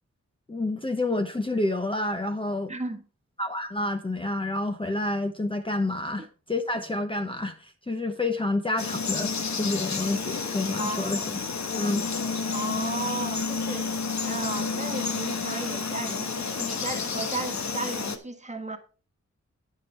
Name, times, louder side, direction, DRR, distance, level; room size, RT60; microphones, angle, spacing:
voice 1, 0.5-2.7 3.4-11.4 11.8-12.1, left 2 dB, 15° left, 0.8 m, -29 dB
voice 2, 2.7-3.0 6.2-6.3 10.8-11.2 12.5-18.8, right 2 dB, 25° right, 1.4 m, -35 dB
Frog, 8.8-18.2, left 4 dB, 65° left, 1.2 m, -30 dB
9.5 x 7.5 x 4.4 m
wide cardioid pair, 130°, 30 cm